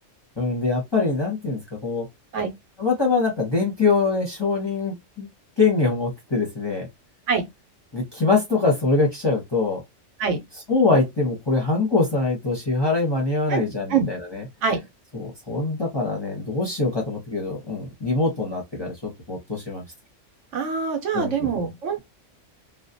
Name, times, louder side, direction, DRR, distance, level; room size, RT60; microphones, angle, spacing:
voice 1, 0.4-2.0 2.8-5.3 5.6-6.9 7.9-9.8 10.7-14.4 15.2-18.9 19.3-19.8 21.1-21.5, left 3 dB, 25° left, 0.7 m, -23 dB
voice 2, 20.5-22.0, right 6 dB, 75° right, 1.0 m, -24 dB
2.4 x 2.2 x 2.6 m
omnidirectional pair, 1.3 m